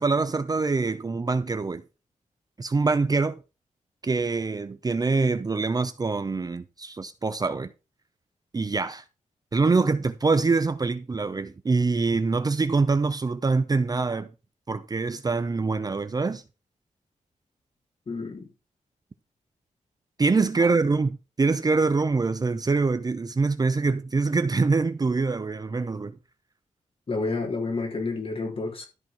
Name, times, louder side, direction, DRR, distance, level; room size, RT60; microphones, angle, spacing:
voice 1, 0.0-1.8 2.6-3.4 4.0-7.7 8.5-9.0 9.5-14.3 14.7-16.4 20.2-26.1, right 4 dB, 30° right, 0.6 m, -24 dB
voice 2, 18.1-18.5 27.1-28.9, left 3 dB, 45° left, 3.7 m, -29 dB
13.0 x 4.6 x 5.9 m
wide cardioid pair, 125°, 13 cm